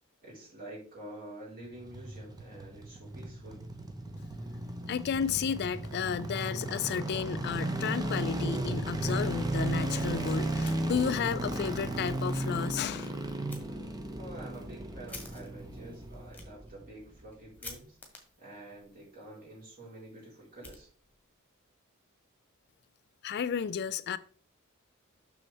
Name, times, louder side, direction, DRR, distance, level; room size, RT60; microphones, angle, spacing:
voice 1, 0.2-3.6 14.2-18.0 18.4-20.9, right 1 dB, 40° right, 3.9 m, -48 dB
sound 1, 1.6-16.9 17.1-17.2, right 1 dB, 20° right, 0.8 m, -35 dB
voice 2, 4.8-13.1 23.2-24.2, left 7 dB, 50° left, 0.3 m, -32 dB
Fire, 10.6-11.4 11.7-11.8 12.3-12.4 13.5-13.6 14.2-21.3, left 3 dB, 10° left, 1.6 m, -52 dB
6.9 x 6.3 x 3.4 m
head